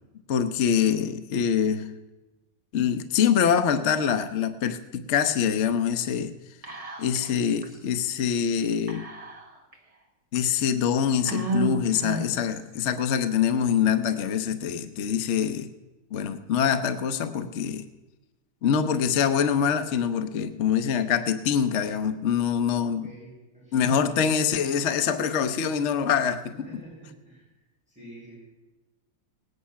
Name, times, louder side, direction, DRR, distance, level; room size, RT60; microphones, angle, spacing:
voice 1, 0.3-1.9 2.7-6.3 7.0-9.1 10.3-15.7 16.1-17.8 18.6-23.1 23.7-26.5, left 7 dB, 55° left, 9 dB, 0.8 m, -24 dB
Whispering, 6.6-7.3 7.6-7.7 8.9-9.7 10.4-10.5 11.3-12.5, right 3 dB, 20° right, 1.4 m, -32 dB
voice 2, 22.8-23.9 26.5-27.4 27.9-28.4, right 1 dB, 5° right, -8 dB, 5.6 m, -47 dB
18.0 x 9.6 x 5.6 m, 1.1 s
omnidirectional pair, 1.9 m